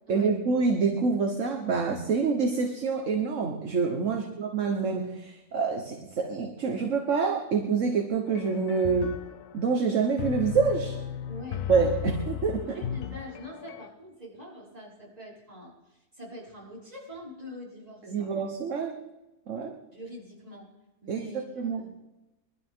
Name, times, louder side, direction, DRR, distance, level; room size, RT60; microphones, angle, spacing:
voice 1, 0.1-9.2 9.5-11.0 11.7-12.8 18.1-19.0 19.5-19.7 21.1-21.8, right 5 dB, 55° right, 3 dB, 1.5 m, -27 dB
sound 1, 8.3-13.9, left 10 dB, 80° left, 1.3 m, -36 dB
voice 2, 11.3-11.6 12.7-18.3 19.9-20.7 21.0-22.0, left 1 dB, 25° right, -6 dB, 5.8 m, -44 dB
22.5 x 12.5 x 3.7 m, 0.98 s
omnidirectional pair, 1.6 m